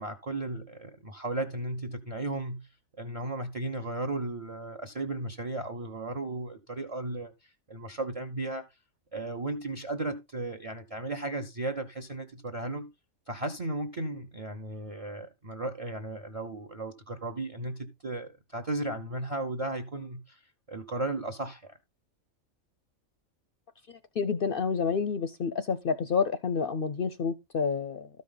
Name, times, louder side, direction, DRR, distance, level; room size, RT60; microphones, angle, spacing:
voice 1, 0.0-2.7 3.0-8.6 9.1-12.9 13.3-20.4 20.7-21.8, right 2 dB, 35° right, 0.6 m, -35 dB
voice 2, 24.2-28.1, left 5 dB, 55° left, 0.6 m, -29 dB
13.0 x 5.3 x 3.8 m
omnidirectional pair, 1.4 m